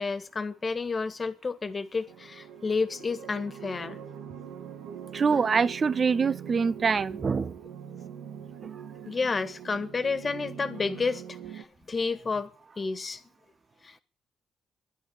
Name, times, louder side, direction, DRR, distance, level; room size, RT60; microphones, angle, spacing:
voice 1, 0.0-4.0 9.0-12.5 12.8-13.2 13.8-14.0, left 4 dB, 35° left, 1.7 m, -31 dB
sound 1, 2.1-11.6, right 8 dB, 85° right, 1.8 m, -42 dB
voice 2, 5.1-7.5, right 5 dB, 45° right, 0.7 m, -25 dB
11.0 x 10.5 x 9.6 m
cardioid pair, 75°, 0 cm